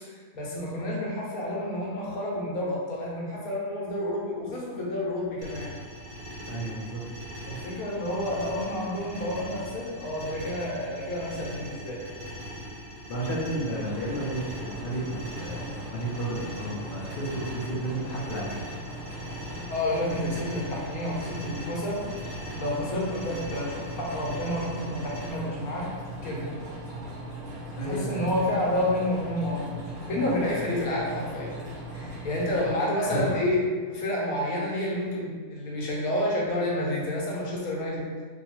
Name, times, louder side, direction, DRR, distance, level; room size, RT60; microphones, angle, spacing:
voice 1, 0.1-5.7 7.5-12.0 19.5-22.0 22.6-25.9 26.2-26.5 27.8-31.5 31.9-33.6 33.9-38.1, left 1 dB, 80° left, -4 dB, 1.2 m, -29 dB
sound 1, 5.4-25.3, equal, 80° right, 1.2 m, -41 dB
voice 2, 6.5-7.0 13.1-18.6 27.7-28.3 33.0-33.4, right 1 dB, 55° left, -4 dB, 0.6 m, -32 dB
sound 2, 13.7-32.7, right 1 dB, 40° right, 0.8 m, -39 dB
2.7 x 2.3 x 3.0 m, 1.6 s
omnidirectional pair, 1.5 m